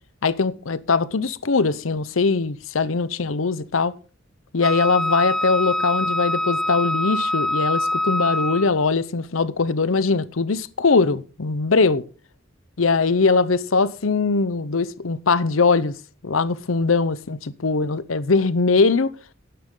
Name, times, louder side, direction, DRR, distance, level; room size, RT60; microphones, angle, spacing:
voice 1, 0.2-3.9 4.5-12.0 12.8-15.9 16.2-19.1, left 4 dB, 80° left, 0.8 m, -21 dB
Wind instrument woodwind instrument, 4.6-8.8, left 1 dB, ahead, 0.5 m, -24 dB
12.5 x 10.0 x 3.8 m
head